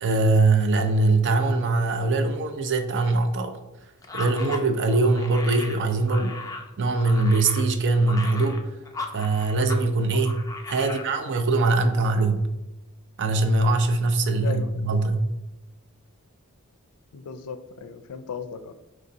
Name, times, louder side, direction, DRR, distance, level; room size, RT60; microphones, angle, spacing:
voice 1, 0.0-3.6 4.1-6.3 6.8-8.6 9.1-12.5 13.2-15.3, right 3 dB, 55° right, 7 dB, 0.4 m, -22 dB
sound 1, 4.0-9.8 10.1-11.1, left 3 dB, 15° left, 0.3 m, -37 dB
voice 2, 14.4-14.7 17.1-18.7, left 5 dB, 90° left, 10 dB, 0.4 m, -36 dB
5.0 x 3.1 x 2.7 m, 0.96 s
head